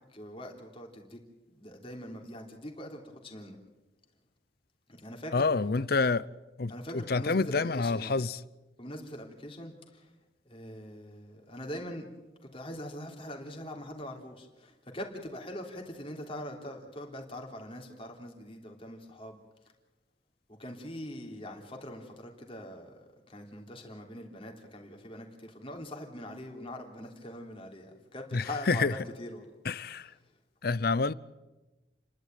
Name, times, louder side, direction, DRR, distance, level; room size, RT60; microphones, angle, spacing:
voice 1, 0.1-1.2 1.5-3.6 4.9-5.5 6.7-8.1 8.8-10.1 10.4-12.0 12.4-19.4 20.5-29.5 29.8-30.0, left 1 dB, 30° left, 3.4 m, -43 dB
voice 2, 5.3-6.3 6.6-8.4 28.3-28.9 29.6-30.1 30.6-31.1, left 4 dB, 55° left, 0.6 m, -28 dB
30.0 x 12.0 x 9.2 m
head